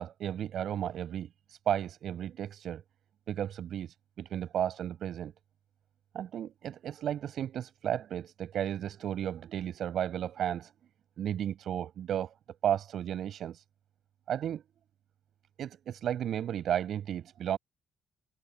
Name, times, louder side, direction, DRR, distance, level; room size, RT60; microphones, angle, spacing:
voice 1, 0.0-2.8 3.3-5.3 6.1-10.7 11.2-12.3 12.6-13.6 14.3-14.6 15.6-17.6, right 10 dB, 70° right, 7.7 m, -33 dB
cardioid pair, 90°, 0 cm